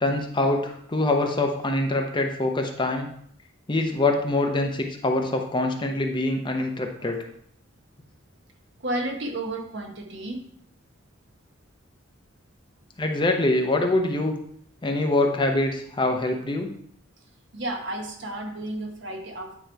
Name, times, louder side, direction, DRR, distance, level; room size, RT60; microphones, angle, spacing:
voice 1, 0.0-3.1 3.7-7.2 13.0-14.3 14.8-16.7, left 2 dB, 25° left, 3 dB, 0.6 m, -24 dB
voice 2, 8.8-10.4 17.5-19.6, right 1 dB, 60° right, 2 dB, 1.1 m, -32 dB
8.9 x 3.0 x 4.5 m, 0.65 s
head